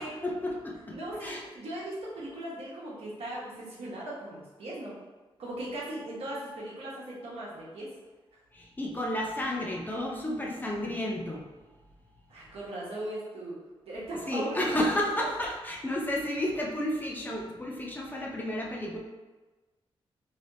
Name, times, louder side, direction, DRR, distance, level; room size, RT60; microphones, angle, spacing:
voice 1, 0.2-1.0 1.2-1.4 8.5-11.5 14.2-19.0, left 1 dB, 20° left, -2 dB, 0.6 m, -31 dB
voice 2, 1.0-5.0 5.4-7.9 12.3-13.6 13.9-14.7, right 1 dB, 85° right, -6 dB, 1.1 m, -38 dB
3.3 x 2.8 x 2.7 m, 1.2 s
wide cardioid pair, 120°, 10 cm